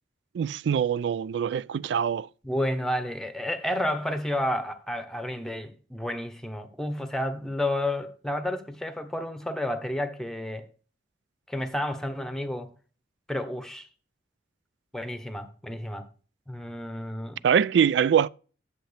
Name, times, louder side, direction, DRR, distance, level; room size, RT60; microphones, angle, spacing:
voice 1, 0.3-2.3 17.4-18.3, right 8 dB, 70° right, 0.3 m, -23 dB
voice 2, 2.4-10.7 11.5-12.7 13.3-13.9 14.9-16.1 16.5-17.4, left 1 dB, 5° left, 1.0 m, -31 dB
10.5 x 7.6 x 3.4 m
head